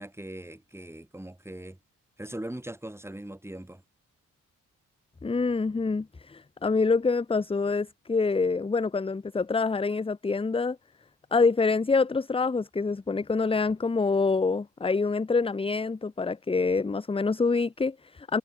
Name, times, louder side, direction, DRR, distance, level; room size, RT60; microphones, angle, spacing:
voice 1, 0.0-1.8 2.2-3.8, right 1 dB, 10° right, 3.9 m, -40 dB
voice 2, 5.2-10.8 11.3-18.4, left 4 dB, 15° left, 0.7 m, -26 dB
cardioid pair, 85°, 32 cm